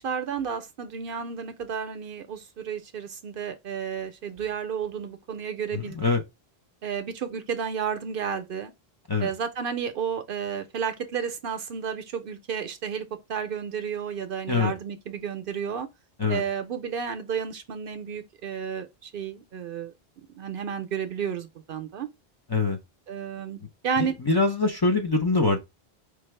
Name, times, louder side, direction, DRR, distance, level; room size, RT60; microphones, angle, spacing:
voice 1, 0.0-6.0 6.8-8.7 9.2-13.0 13.3-15.9 16.3-19.9 20.3-22.1 23.1-24.2, right 7 dB, 65° right, 0.7 m, -32 dB
voice 2, 5.7-6.2 9.1-9.3 14.5-14.7 16.2-16.4 22.5-22.8 24.0-25.6, left 3 dB, 25° left, 0.6 m, -24 dB
4.6 x 2.3 x 3.1 m
omnidirectional pair, 1.0 m